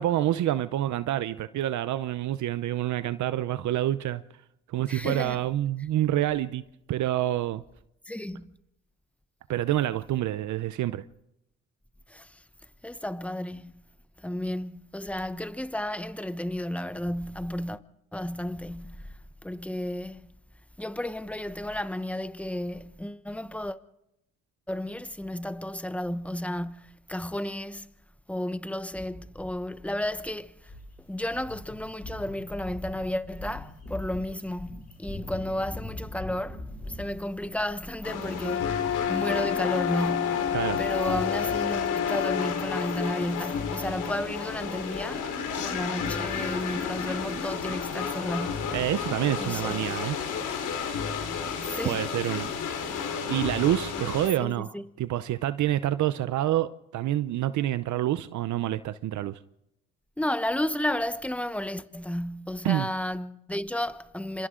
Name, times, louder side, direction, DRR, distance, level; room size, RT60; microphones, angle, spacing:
voice 1, 0.0-4.2 4.7-6.6 6.9-7.6 9.5-11.0 40.5-40.8 48.7-50.2 51.9-52.5 53.3-59.4 62.6-62.9, right 13 dB, 70° right, 0.7 m, -27 dB
voice 2, 4.9-5.4 8.0-8.5 12.1-12.4 12.8-13.8 14.2-17.8 18.1-20.3 20.8-23.8 24.7-27.9 28.3-30.7 31.0-48.7 49.4-49.9 51.6-52.1 52.9-53.0 54.4-54.9 60.2-64.5, left 1 dB, 5° left, 1.0 m, -33 dB
sound 1, 30.6-41.7 42.0-42.2 42.5-50.2, left 2 dB, 30° left, 5.8 m, -43 dB
sound 2, 38.0-54.3, left 6 dB, 85° left, 3.9 m, -32 dB
sound 3, 38.4-42.5, left 9 dB, 50° left, 0.8 m, -29 dB
28.0 x 26.5 x 3.8 m
cardioid pair, 90°, 30 cm